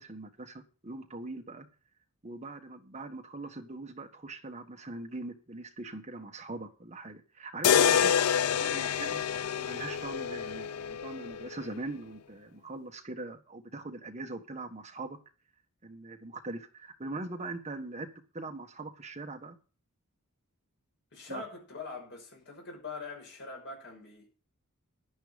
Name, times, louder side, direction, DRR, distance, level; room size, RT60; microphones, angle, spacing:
voice 1, 0.0-1.7 2.2-8.1 8.5-9.3 9.6-15.2 15.8-18.1 18.3-19.6 21.3-21.4, right 2 dB, 30° right, 1.5 m, -41 dB
sound 1, 7.6-11.7, left 8 dB, 85° left, 0.5 m, -27 dB
voice 2, 21.1-24.3, left 4 dB, 55° left, 5.8 m, -43 dB
11.0 x 10.5 x 5.2 m
head